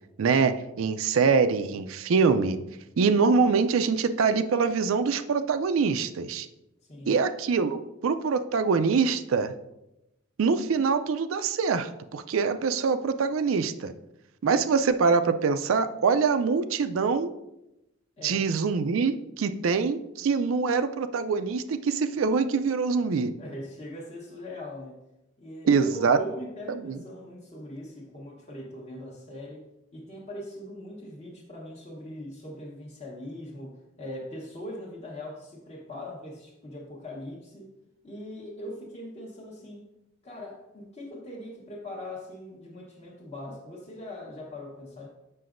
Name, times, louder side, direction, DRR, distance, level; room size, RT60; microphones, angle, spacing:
voice 1, 0.2-2.6 3.0-6.5 7.1-9.5 10.4-13.9 14.4-17.3 18.2-23.3 25.7-26.2 26.7-27.0, right 5 dB, 75° right, 10 dB, 0.4 m, -24 dB
voice 2, 6.9-7.2 18.2-18.5 23.4-25.0 25.4-29.6 29.9-37.6 38.0-39.8 40.2-45.1, left 1 dB, 30° left, -5 dB, 1.1 m, -41 dB
7.6 x 5.9 x 2.5 m, 0.90 s
head